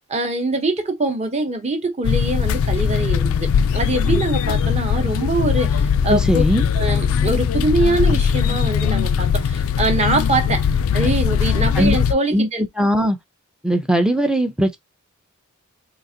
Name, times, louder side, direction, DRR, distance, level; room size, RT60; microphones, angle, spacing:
voice 1, 0.1-6.4 6.8-10.7 10.9-12.6, right 2 dB, 30° right, 0.8 m, -23 dB
sound 1, 2.0-12.1, left 7 dB, 70° left, 0.3 m, -20 dB
voice 2, 6.1-6.6 11.8-12.0 12.3-12.5 12.8-13.2 13.6-14.8, equal, 5° right, 0.4 m, -19 dB
3.9 x 2.4 x 2.7 m
head